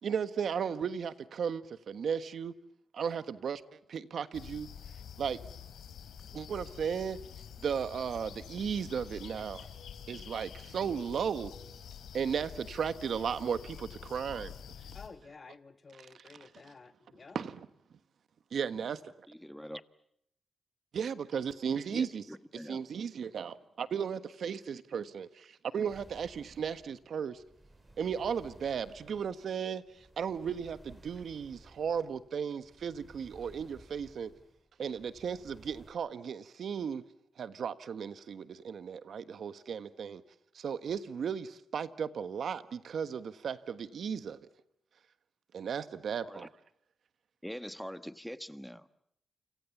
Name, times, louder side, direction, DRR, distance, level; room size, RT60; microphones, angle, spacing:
voice 1, 0.0-2.5 2.9-4.7 5.2-5.4 6.3-7.2 7.6-9.7 10.1-11.5 12.1-14.5 17.3-17.7 18.5-19.0 20.9-22.2 22.7-27.4 28.0-29.8 30.2-34.3 34.8-37.0 37.4-40.2 40.5-44.5 45.5-46.5, right 7 dB, 70° right, 1.4 m, -35 dB
sound 1, 4.3-15.1, left 8 dB, 90° left, 4.0 m, -48 dB
voice 2, 14.9-17.4, left 4 dB, 45° left, 1.5 m, -52 dB
voice 3, 19.3-19.8 21.9-22.8 46.2-46.5 47.4-49.0, equal, ahead, 1.4 m, -43 dB
sound 2, 25.9-35.9, right 1 dB, 20° right, 7.8 m, -57 dB
29.0 x 27.0 x 7.2 m
cardioid pair, 70°, 0 cm